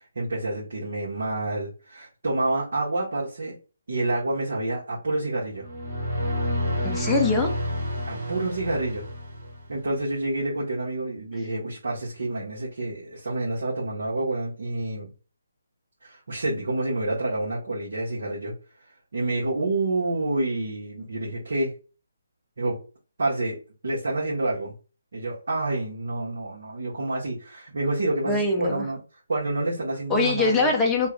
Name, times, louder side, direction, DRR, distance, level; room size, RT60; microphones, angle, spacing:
voice 1, 0.1-3.5 3.9-5.7 8.1-9.0 9.7-15.1 16.0-18.5 19.1-21.7 22.6-22.8 23.2-23.6 23.8-24.7 25.1-29.0 29.3-30.7, right 2 dB, 70° right, -7 dB, 1.4 m, -28 dB
sound 1, 5.5-9.9, equal, 40° right, 1.4 m, -29 dB
voice 2, 6.8-7.5 28.3-28.9 30.1-31.1, left 3 dB, 5° left, -1 dB, 0.5 m, -23 dB
3.0 x 2.5 x 3.1 m, 0.35 s
hypercardioid pair, 165°, 0 cm